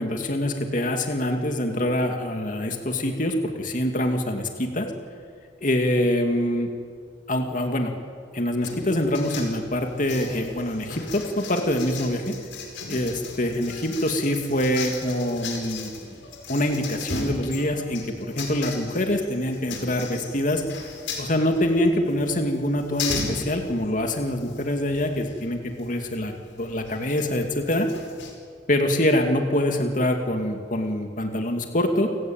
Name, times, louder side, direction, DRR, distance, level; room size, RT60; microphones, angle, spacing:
voice 1, 0.0-4.9 5.6-6.7 7.3-7.9 8.3-12.4 12.9-15.9 16.5-20.6 21.2-26.3 26.6-27.9 28.7-32.1, left 1 dB, 45° left, 4 dB, 2.6 m, -25 dB
sound 1, 8.6-28.3, left 4 dB, 80° left, 5.2 m, -37 dB
29.0 x 17.0 x 9.1 m, 2.1 s
head